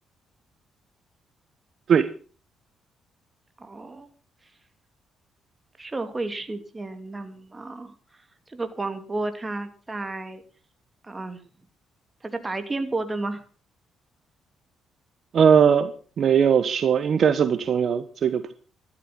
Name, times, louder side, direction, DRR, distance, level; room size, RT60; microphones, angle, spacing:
voice 1, 3.6-4.1 5.8-7.9 8.5-10.4 11.0-11.4 12.2-13.4, right 2 dB, 20° right, 9 dB, 2.8 m, -32 dB
voice 2, 15.3-18.5, right 7 dB, 55° right, 12 dB, 1.2 m, -20 dB
14.0 x 12.5 x 6.0 m, 0.40 s
cardioid pair, 90°, 0 cm